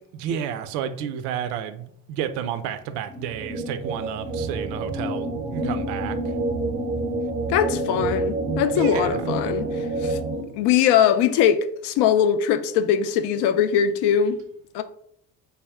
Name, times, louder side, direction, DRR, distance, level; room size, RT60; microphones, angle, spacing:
voice 1, 0.1-6.2 8.7-9.3, right 9 dB, 70° right, 0.5 m, -31 dB
sound 1, 3.1-10.4, right 2 dB, 15° right, 0.6 m, -28 dB
voice 2, 7.5-10.2 10.5-14.4 14.7-14.8, left 8 dB, 55° left, 0.5 m, -21 dB
3.5 x 2.2 x 3.4 m
hypercardioid pair, 60°, 50 cm